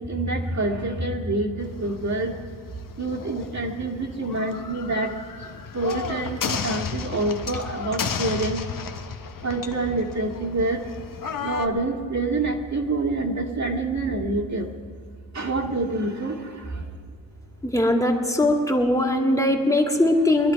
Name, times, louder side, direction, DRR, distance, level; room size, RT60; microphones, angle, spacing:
voice 1, 0.0-2.4 3.0-8.7 9.4-10.8 11.4-14.7 15.3-16.9, right 2 dB, 40° right, 1 dB, 2.0 m, -27 dB
sound 1, 1.6-11.7, left 6 dB, 50° left, 1.2 m, -33 dB
voice 2, 17.6-20.5, left 1 dB, 5° left, 2 dB, 2.0 m, -20 dB
22.0 x 11.0 x 4.7 m, 2.1 s
cardioid pair, 70°, 43 cm